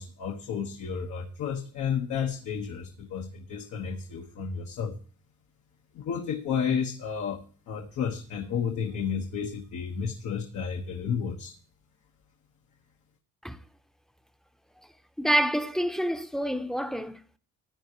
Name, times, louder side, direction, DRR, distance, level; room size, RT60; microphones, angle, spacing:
voice 1, 0.0-4.9 5.9-11.6, left 7 dB, 75° left, 1.5 m, -32 dB
voice 2, 15.2-17.4, right 1 dB, ahead, 0.8 m, -28 dB
15.5 x 9.6 x 3.1 m
cardioid pair, 90°, 30 cm